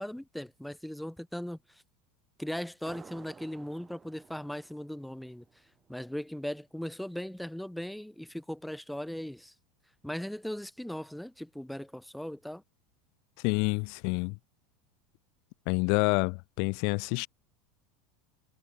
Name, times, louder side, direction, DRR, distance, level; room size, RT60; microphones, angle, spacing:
voice 1, 0.0-1.8 2.4-5.4 5.9-9.5 10.0-12.6, equal, ahead, 2.0 m, -38 dB
sound 1, 2.9-6.2, right 5 dB, 20° right, 2.7 m, -54 dB
voice 2, 13.4-14.3 15.7-17.3, left 36 dB, 60° left, 0.5 m, -28 dB
supercardioid pair, 110°, 0 cm